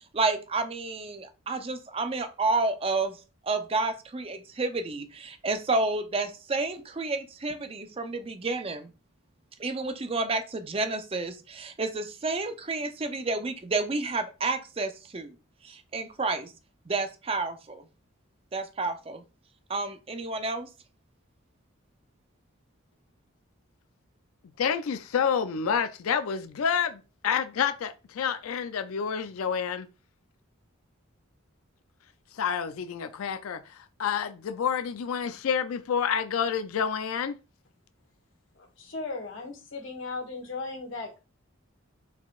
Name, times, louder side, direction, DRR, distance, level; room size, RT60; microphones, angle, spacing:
voice 1, 0.0-3.2 3.4-8.9 9.6-15.3 15.6-16.5 16.9-17.8 18.5-19.2 19.7-20.7, right 3 dB, 25° right, 0.5 m, -30 dB
voice 2, 24.6-29.9 32.4-33.6 34.0-37.4, left 7 dB, 90° left, 0.4 m, -28 dB
voice 3, 38.8-41.2, left 3 dB, 65° left, 1.8 m, -36 dB
4.4 x 3.9 x 2.4 m
head